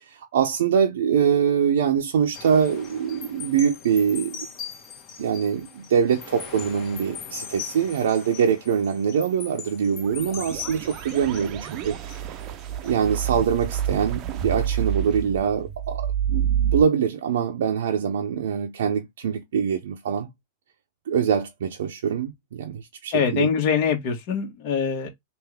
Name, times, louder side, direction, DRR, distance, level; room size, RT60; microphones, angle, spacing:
voice 1, 0.0-4.4 5.2-12.3 12.8-20.3 21.1-23.5, right 7 dB, 80° right, 0.6 m, -24 dB
sound 1, 2.3-12.9 13.3-13.6, left 8 dB, 30° left, 1.4 m, -40 dB
sound 2, 9.9-16.8, right 10 dB, 40° right, 0.6 m, -28 dB
voice 2, 23.1-25.1, left 7 dB, 50° left, 1.6 m, -23 dB
3.5 x 2.6 x 3.4 m
hypercardioid pair, 125°, 0 cm